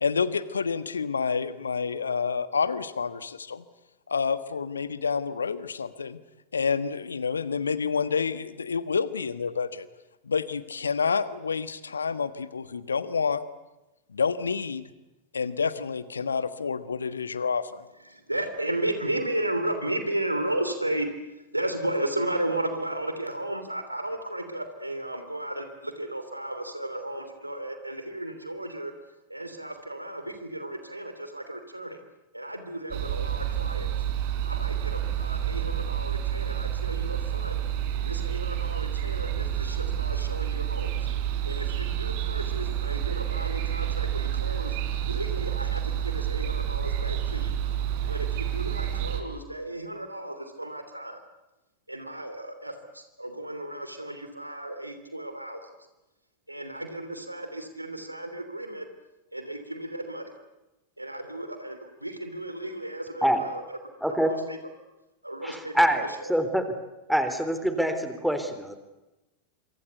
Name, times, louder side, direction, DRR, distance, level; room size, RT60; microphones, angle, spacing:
voice 1, 0.0-3.6 4.1-6.2 6.5-9.9 10.2-13.4 14.1-14.8 15.3-17.8, left 5 dB, 75° left, 14 dB, 1.5 m, -28 dB
voice 2, 18.3-21.1 21.5-28.9 29.3-32.0 32.3-33.9 34.4-37.5 38.0-40.9 41.4-44.7 45.1-47.5 48.1-51.2 51.9-55.6 56.5-58.8 59.3-60.2 61.0-63.6 65.2-65.7, right 1 dB, 85° right, 8 dB, 3.1 m, -34 dB
sound 1, 32.9-49.2, right 10 dB, 50° right, 4.3 m, -29 dB
voice 3, 64.0-64.3 65.4-66.8 67.1-68.8, equal, ahead, 9 dB, 3.6 m, -25 dB
27.0 x 25.0 x 8.2 m, 1.0 s
figure-of-eight pair, 90°, 0 cm